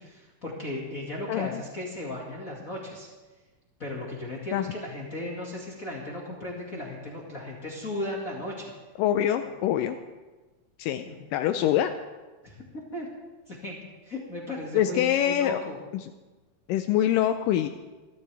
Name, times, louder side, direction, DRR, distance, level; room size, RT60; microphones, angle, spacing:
voice 1, 0.0-3.1 3.8-8.7 11.1-11.2 11.6-11.7 12.4-12.6 12.9-13.1 13.5-13.8 14.0-15.8, left 1 dB, 30° left, -4 dB, 2.0 m, -36 dB
voice 2, 1.3-1.6 4.5-4.6 9.0-10.0 10.8-11.1 11.3-11.9 14.7-15.6 15.9-16.1 16.7-17.7, left 11 dB, 80° left, 8 dB, 2.2 m, -24 dB
25.5 x 13.5 x 3.4 m, 1.2 s
omnidirectional pair, 3.9 m